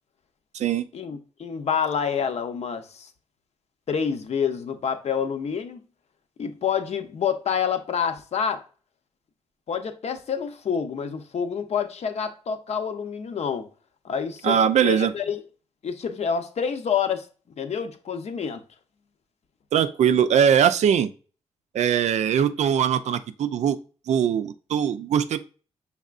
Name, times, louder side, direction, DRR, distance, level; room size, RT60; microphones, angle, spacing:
voice 1, 0.9-3.1 3.9-5.8 6.4-8.6 9.7-13.7 14.0-14.6 14.8-15.4 15.8-17.3 17.6-18.6, left 7 dB, 65° left, 0.7 m, -27 dB
voice 2, 14.4-15.1 19.7-21.1 21.7-23.8 24.1-25.4, right 8 dB, 80° right, 0.4 m, -21 dB
5.4 x 3.5 x 2.4 m
cardioid pair, 70°, 12 cm